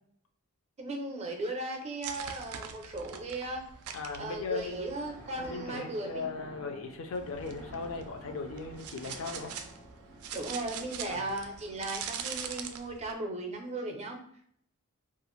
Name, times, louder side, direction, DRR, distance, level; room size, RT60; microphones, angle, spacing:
voice 1, 0.8-3.7 4.2-6.3 10.3-14.2, right 2 dB, 30° right, 3 dB, 0.5 m, -37 dB
sound 1, 2.0-5.5 7.1-13.1, right 7 dB, 90° right, 0.3 m, -43 dB
voice 2, 3.9-4.9 5.4-9.5 11.1-11.3, left 4 dB, 60° left, 5 dB, 0.4 m, -38 dB
sound 2, 4.7-12.8, right 1 dB, 90° left, 1.1 m, -51 dB
2.4 x 2.4 x 3.0 m, 0.64 s
head